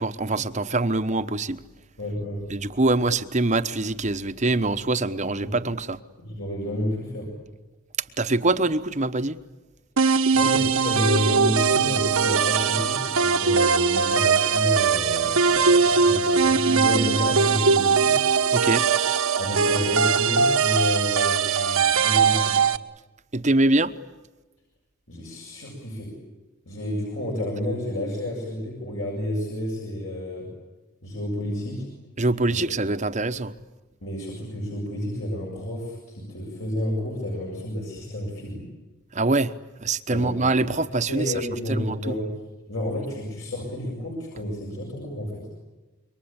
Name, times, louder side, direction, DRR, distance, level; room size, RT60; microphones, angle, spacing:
voice 1, 0.0-1.6 2.5-6.0 8.2-9.4 18.5-18.8 23.3-23.9 32.2-33.5 39.1-39.5 39.8-41.3 41.7-42.1, right 2 dB, 30° right, 10 dB, 1.0 m, -24 dB
voice 2, 2.0-2.5 5.4-5.6 6.2-7.4 10.3-18.2 19.4-22.7 25.1-26.2 26.7-30.5 31.0-31.9 32.5-32.9 34.0-38.7 40.1-40.5 41.1-42.4 42.7-45.5, left 1 dB, 60° left, -1 dB, 7.4 m, -30 dB
sound 1, 10.0-22.8, right 5 dB, 75° right, 1.2 m, -21 dB
27.5 x 23.5 x 8.9 m, 1.1 s
head